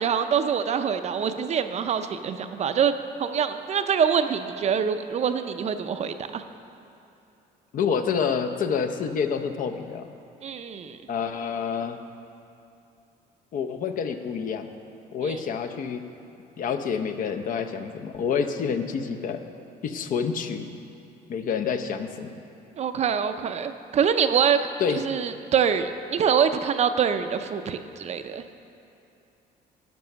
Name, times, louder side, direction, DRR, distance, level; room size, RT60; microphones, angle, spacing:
voice 1, 0.0-2.9 3.2-6.4 10.4-11.0 15.2-15.4 22.8-24.6 24.9-28.4, right 7 dB, 40° right, 9 dB, 0.5 m, -25 dB
voice 2, 7.7-10.1 11.1-12.0 13.5-14.7 15.1-16.0 16.6-19.4 19.8-20.7 21.3-22.3 24.8-25.1, left 6 dB, 55° left, 7 dB, 0.6 m, -28 dB
10.5 x 5.4 x 6.7 m, 2.7 s
cardioid pair, 110°, 17 cm